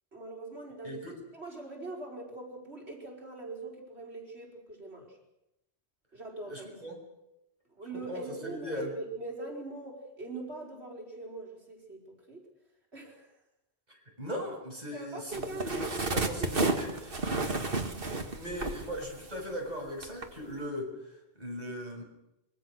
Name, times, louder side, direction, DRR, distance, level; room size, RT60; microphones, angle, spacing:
voice 1, 0.1-1.0 1.3-5.2 6.1-6.7 7.8-12.4 12.9-13.3 14.9-16.9 17.3-17.8, right 2 dB, 75° right, 0 dB, 5.3 m, -42 dB
voice 2, 0.8-1.2 6.5-7.0 7.9-8.9 13.9-17.2 18.3-22.0, equal, 40° right, 0 dB, 6.7 m, -39 dB
sound 1, 15.3-19.6 20.0-20.3, right 3 dB, 55° right, 2.2 m, -31 dB
25.5 x 22.0 x 6.5 m, 0.89 s
omnidirectional pair, 1.1 m